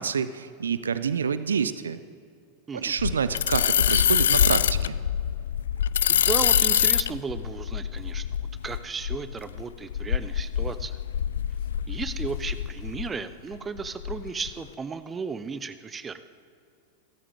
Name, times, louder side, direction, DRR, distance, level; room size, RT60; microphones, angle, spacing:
voice 1, 0.0-2.0 2.7-4.9, right 6 dB, 70° right, 14 dB, 0.6 m, -27 dB
sound 1, 3.0-13.2 13.5-14.5, left 9 dB, 65° left, 0.3 m, -25 dB
voice 2, 6.1-11.0 11.9-16.2, right 5 dB, 20° right, 13 dB, 0.8 m, -35 dB
28.0 x 13.5 x 3.7 m, 2.3 s
figure-of-eight pair, 90°, 0 cm